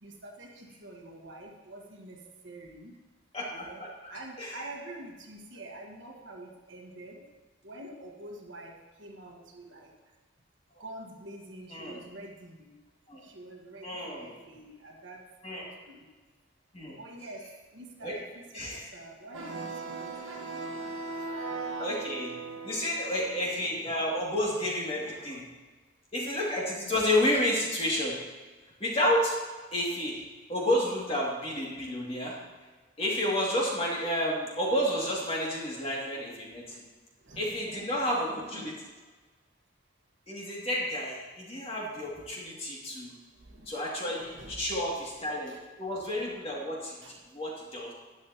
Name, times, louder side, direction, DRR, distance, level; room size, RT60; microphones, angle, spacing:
voice 1, 0.0-2.2 2.4-2.9 3.5-3.8 4.1-7.2 7.6-9.9 10.8-12.7 13.2-15.2 15.6-16.0 17.0-17.5 17.7-21.0 23.8-24.1 35.4-35.5 37.2-37.9 38.3-38.8 43.5-43.7 44.1-44.8 45.5-45.6 47.0-47.2, right 1 dB, 60° right, 0 dB, 1.5 m, -47 dB
voice 2, 3.3-3.9 4.4-4.6 11.7-12.0 13.1-13.2 13.8-14.3 15.4-15.7 16.7-17.0 18.0-18.1 18.5-18.9 21.8-22.4 22.6-25.4 26.1-28.1 28.8-29.3 29.7-30.2 30.5-32.4 33.0-36.8 37.4-38.7 40.3-43.1 43.7-47.0 47.3-47.9, left 1 dB, 30° left, -4 dB, 2.5 m, -30 dB
sound 1, 19.3-25.4, right 3 dB, 80° right, 1.4 m, -39 dB
12.5 x 10.5 x 3.0 m, 1.3 s
head